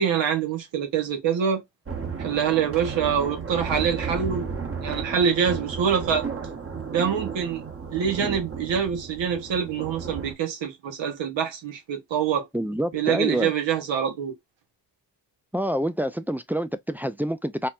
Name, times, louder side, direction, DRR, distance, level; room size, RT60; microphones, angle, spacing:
voice 1, 0.0-1.6 2.2-4.5 4.8-6.2 6.9-7.6 7.9-12.5 12.9-14.3, right 7 dB, 80° right, 1.2 m, -25 dB
sound 1, 1.9-10.3, right 5 dB, 30° right, 1.0 m, -33 dB
voice 2, 12.5-13.5 15.5-17.7, equal, 5° right, 0.3 m, -27 dB
4.4 x 2.1 x 2.4 m
cardioid pair, 75°, 44 cm